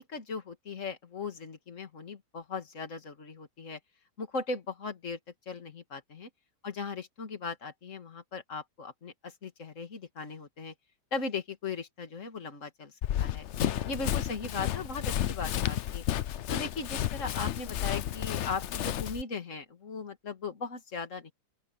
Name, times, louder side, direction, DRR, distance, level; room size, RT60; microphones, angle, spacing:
voice 1, 0.0-3.8 4.2-5.2 5.5-6.3 6.6-10.7 11.1-12.9 13.2-13.5 13.9-16.0 16.5-21.3, left 4 dB, 45° left, 2.6 m, -38 dB
Run, 13.0-19.2, left 11 dB, 65° left, 0.7 m, -32 dB
open air
omnidirectional pair, 1.8 m